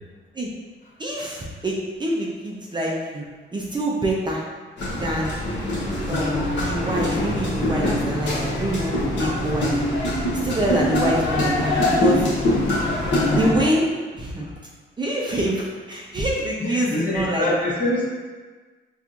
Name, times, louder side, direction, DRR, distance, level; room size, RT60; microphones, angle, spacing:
voice 1, 1.0-3.3 3.5-4.4 5.0-5.4 6.1-9.8 10.4-12.2 13.3-13.9 14.1-14.5 15.0-17.5, right 1 dB, 25° right, -3 dB, 0.5 m, -25 dB
sound 1, 4.8-13.5, left 1 dB, 65° left, 1.0 m, -23 dB
voice 2, 16.6-18.1, left 1 dB, 40° left, -6 dB, 1.2 m, -24 dB
4.3 x 2.4 x 2.5 m, 1.4 s
cardioid pair, 90°, 20 cm